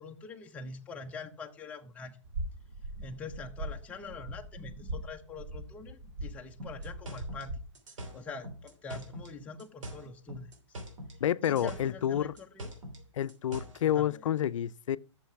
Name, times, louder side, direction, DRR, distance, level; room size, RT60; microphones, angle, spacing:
voice 1, 0.0-2.2 3.0-7.6 8.0-10.5 11.4-12.7 13.8-14.2, left 4 dB, 10° left, 0.5 m, -44 dB
sound 1, 2.2-7.6, right 1 dB, 60° right, 1.8 m, -41 dB
sound 2, 6.6-9.3 9.6-11.2 11.4-13.8, equal, 75° right, 2.9 m, -43 dB
voice 2, 11.2-12.3 13.2-15.0, left 10 dB, 80° left, 0.4 m, -29 dB
6.7 x 5.7 x 5.6 m
hypercardioid pair, 155°, 16 cm